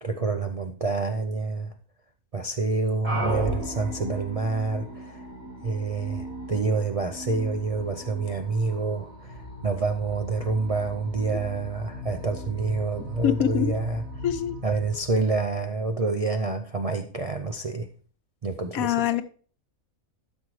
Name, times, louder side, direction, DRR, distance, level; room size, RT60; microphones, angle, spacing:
voice 1, 0.0-1.7 2.3-5.2 5.6-14.0 14.6-17.9 18.4-19.0, right 3 dB, 50° right, 0.4 m, -27 dB
sound 1, 3.0-15.9, equal, 70° right, 4.1 m, -37 dB
voice 2, 13.0-13.7 14.2-14.6 18.7-19.2, left 11 dB, 85° left, 1.1 m, -25 dB
13.5 x 6.2 x 3.2 m
omnidirectional pair, 1.4 m